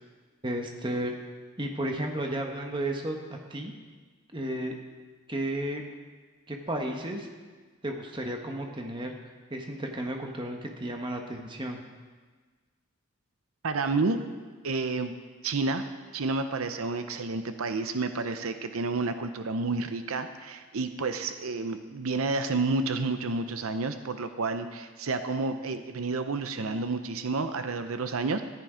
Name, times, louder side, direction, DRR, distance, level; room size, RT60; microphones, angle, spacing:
voice 1, 0.4-1.1 1.6-3.7 4.3-4.8 5.3-5.8 6.5-7.3 7.8-9.2 9.5-11.8, right 1 dB, 20° right, 2 dB, 1.2 m, -33 dB
voice 2, 13.6-14.2 14.6-15.1 15.4-15.9 16.1-28.4, right 3 dB, 80° right, 9 dB, 0.7 m, -30 dB
13.5 x 10.5 x 5.0 m, 1.4 s
head